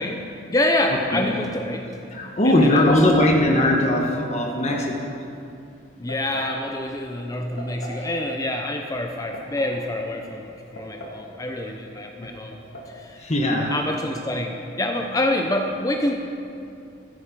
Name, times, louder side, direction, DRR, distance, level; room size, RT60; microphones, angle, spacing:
voice 1, 0.0-1.9 2.4-2.9 6.0-12.6 12.9-13.3 13.7-16.1, left 1 dB, 20° left, 3 dB, 0.7 m, -26 dB
voice 2, 2.1-5.1 12.2-12.3 13.2-13.7, left 1 dB, 35° left, 0 dB, 1.4 m, -20 dB
sound 1, 4.5-4.9 6.1-6.6 7.6-8.1 9.1-9.8 10.8-11.3 11.5-11.6 12.5-12.9, equal, 85° left, 2.7 m, -38 dB
15.0 x 13.5 x 5.3 m, 2.6 s
head